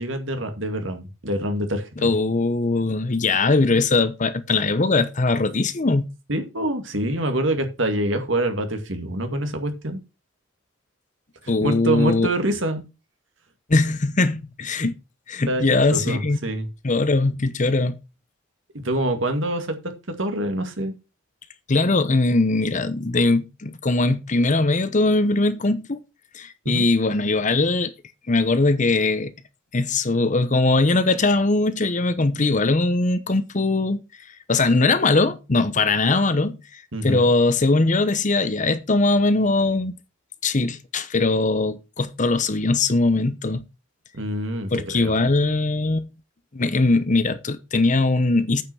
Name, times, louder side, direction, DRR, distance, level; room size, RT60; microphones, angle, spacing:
voice 1, 0.0-2.1 6.3-10.0 11.4-12.8 15.5-15.6 15.9-16.7 18.8-20.9 26.7-26.9 36.9-37.3 44.1-45.1, right 1 dB, 65° right, 2.1 m, -26 dB
voice 2, 2.0-6.0 11.5-12.3 13.7-15.0 15.3-16.4 16.8-18.0 21.7-26.0 26.3-27.9 28.3-29.3 29.7-34.0 34.5-39.9 40.4-43.6 44.7-46.1 46.5-48.6, left 3 dB, 40° left, 0.9 m, -21 dB
8.9 x 5.8 x 6.2 m
head